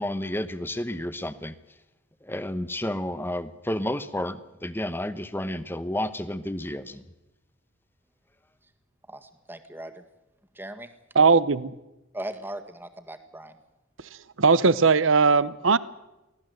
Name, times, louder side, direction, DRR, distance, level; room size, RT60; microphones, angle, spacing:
voice 1, 0.0-1.6 2.2-7.0, left 1 dB, 10° left, 13 dB, 1.0 m, -31 dB
voice 2, 9.1-10.0 10.6-10.9 12.1-13.6, right 1 dB, 10° right, 8 dB, 1.8 m, -38 dB
voice 3, 11.1-11.7 14.4-15.8, right 4 dB, 75° right, 18 dB, 0.9 m, -19 dB
23.5 x 17.5 x 8.0 m, 0.97 s
head